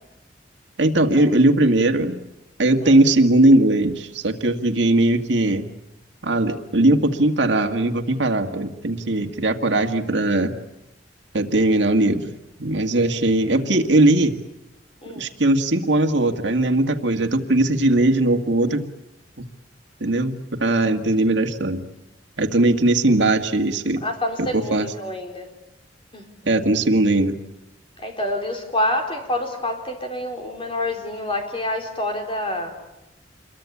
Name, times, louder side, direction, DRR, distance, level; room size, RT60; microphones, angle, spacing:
voice 1, 0.8-2.2 2.6-5.7 6.2-10.5 11.3-12.3 12.6-14.4 15.2-18.9 19.4-19.5 20.0-21.8 22.4-24.0 24.5-24.9 26.5-27.4, right 2 dB, 80° right, 5 dB, 2.0 m, -19 dB
voice 2, 24.0-25.5 26.1-26.3 28.0-32.7, left 1 dB, 30° left, 3 dB, 4.2 m, -27 dB
27.5 x 22.5 x 8.6 m, 0.93 s
head